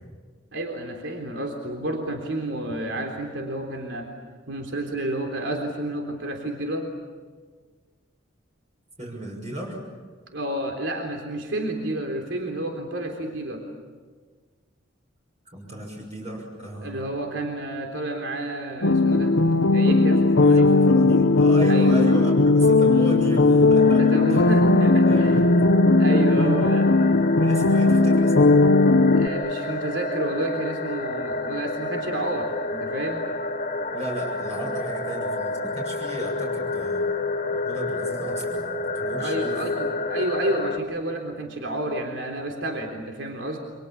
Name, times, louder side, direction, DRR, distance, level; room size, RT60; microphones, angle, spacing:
voice 1, 0.5-4.1 4.5-6.9 10.3-13.6 16.8-19.4 19.7-20.7 21.6-22.2 24.0-25.4 26.0-26.9 29.1-33.3 39.2-43.6, right 1 dB, 70° right, 2 dB, 3.7 m, -30 dB
voice 2, 9.0-9.8 15.5-17.1 20.4-24.0 24.3-24.4 24.7-25.5 27.4-28.6 33.9-37.0 37.5-39.6, equal, 35° right, -2 dB, 6.6 m, -34 dB
sound 1, 18.8-29.3, left 3 dB, 80° left, 1.1 m, -17 dB
sound 2, 23.8-40.8, left 2 dB, 40° left, 2.2 m, -29 dB
29.5 x 26.5 x 7.2 m, 1.5 s
head